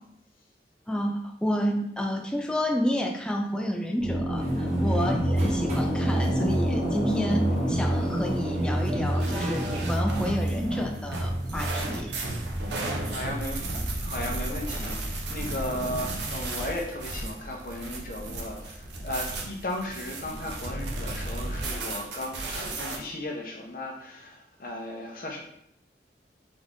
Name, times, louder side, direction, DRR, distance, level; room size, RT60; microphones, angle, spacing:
voice 1, 0.9-12.1, equal, 5° left, 2 dB, 0.3 m, -30 dB
sound 1, 4.0-15.5, right 1 dB, 25° left, 1.5 m, -28 dB
sound 2, 4.4-10.5, equal, 40° right, 1.0 m, -39 dB
sound 3, 9.2-23.0, right 2 dB, 85° right, 0.8 m, -34 dB
voice 2, 13.1-25.4, left 1 dB, 50° left, 0 dB, 0.9 m, -36 dB
3.8 x 3.5 x 3.8 m, 0.75 s
head